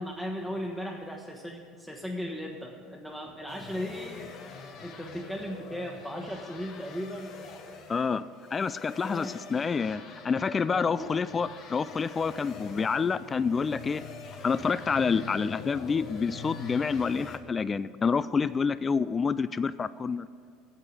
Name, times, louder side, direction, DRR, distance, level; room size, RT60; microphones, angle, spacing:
voice 1, 0.0-4.3 4.8-7.3 9.0-9.4 10.7-11.1, equal, 5° left, 0 dB, 1.2 m, -37 dB
sound 1, 3.5-17.4, left 5 dB, 55° left, 1.2 m, -45 dB
voice 2, 7.9-8.2 8.5-14.0 14.4-20.3, left 5 dB, 30° left, 16 dB, 0.3 m, -28 dB
8.8 x 8.1 x 8.5 m, 2.3 s
hypercardioid pair, 80°, 0 cm